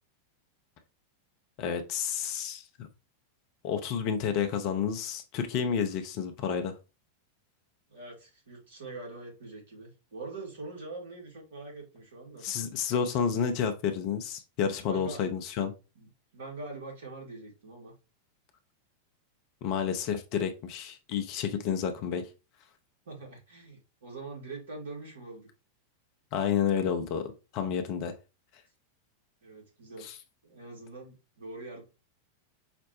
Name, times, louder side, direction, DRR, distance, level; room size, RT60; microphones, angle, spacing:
voice 1, 1.6-2.9 3.6-6.8 12.4-15.7 19.6-22.3 26.3-28.1 30.0-30.1, left 7 dB, 40° left, 6 dB, 0.6 m, -30 dB
voice 2, 7.9-12.4 14.9-15.2 15.9-17.9 23.0-25.5 29.4-30.1 30.4-31.8, right 3 dB, 65° right, -1 dB, 1.7 m, -43 dB
5.1 x 2.1 x 2.9 m, 0.29 s
figure-of-eight pair, 90°, 0 cm